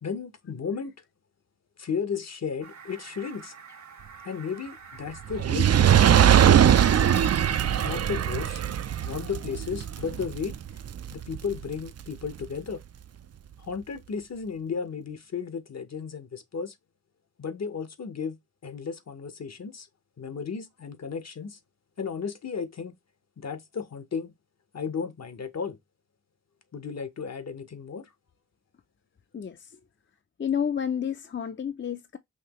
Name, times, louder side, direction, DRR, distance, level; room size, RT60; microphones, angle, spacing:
voice 1, 0.0-0.9 1.8-3.5 4.2-6.9 7.8-8.6 9.0-10.5 11.1-12.8 13.6-16.7 17.4-18.4 18.6-19.9 20.2-21.6 22.0-22.9 23.4-24.3 24.7-25.8 26.7-28.1, left 6 dB, 60° left, 1.0 m, -34 dB
Fowl, 2.6-7.9, right 5 dB, 75° right, 1.4 m, -46 dB
Fire, 5.3-11.7 12.4-12.5, right 9 dB, 60° right, 0.5 m, -21 dB
voice 2, 29.3-29.8 30.4-32.2, left 8 dB, 40° left, 0.6 m, -30 dB
5.8 x 2.8 x 3.0 m
cardioid pair, 55°, 29 cm